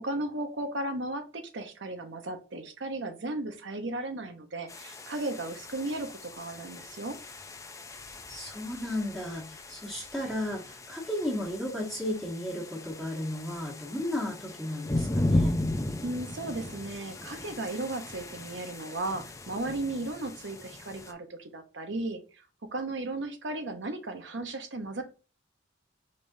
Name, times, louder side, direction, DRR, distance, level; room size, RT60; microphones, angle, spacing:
voice 1, 0.0-7.2 16.0-22.4 22.7-25.0, right 2 dB, 65° right, 6 dB, 0.9 m, -35 dB
sound 1, 4.7-21.1, left 1 dB, 15° left, 0.5 m, -36 dB
voice 2, 8.3-15.6, left 1 dB, ahead, -5 dB, 1.2 m, -34 dB
5.2 x 3.5 x 2.7 m, 0.33 s
head